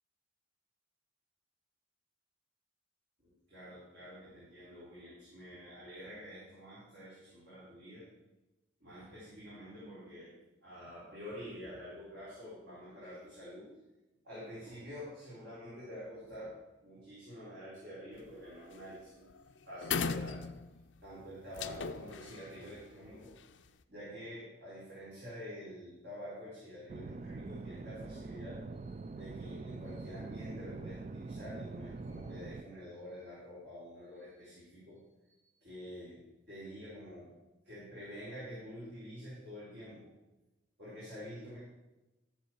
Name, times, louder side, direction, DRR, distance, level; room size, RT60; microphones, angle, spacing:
voice 1, 3.2-8.1 8.8-10.3 10.6-13.7 14.2-16.6 16.8-19.3 19.6-20.4 21.0-23.3 23.9-37.3 37.6-40.1 40.8-41.6, equal, 65° right, -9 dB, 4.4 m, -48 dB
sound 1, 18.1-18.4 18.7-19.0 19.3-19.4 19.8-20.9 21.5-23.6, left 5 dB, 85° left, 0.6 m, -38 dB
sound 2, 26.9-32.6, right 3 dB, 40° right, 0.4 m, -44 dB
14.0 x 7.0 x 4.7 m, 1.1 s
head